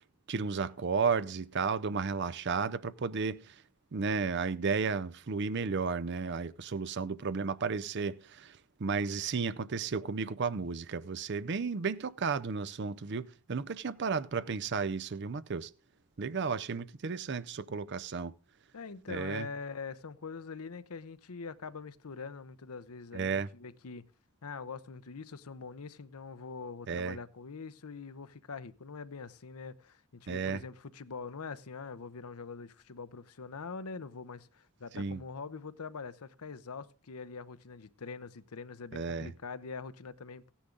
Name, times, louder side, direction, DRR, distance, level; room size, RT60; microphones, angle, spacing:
voice 1, 0.3-3.5 3.9-15.7 16.2-18.3 19.1-19.5 23.1-23.5 26.9-27.2 30.3-30.6 34.9-35.2 38.9-39.3, right 5 dB, 50° right, 0.5 m, -33 dB
voice 2, 18.7-24.1 24.4-40.5, left 4 dB, 80° left, 0.7 m, -44 dB
15.5 x 10.0 x 3.8 m
head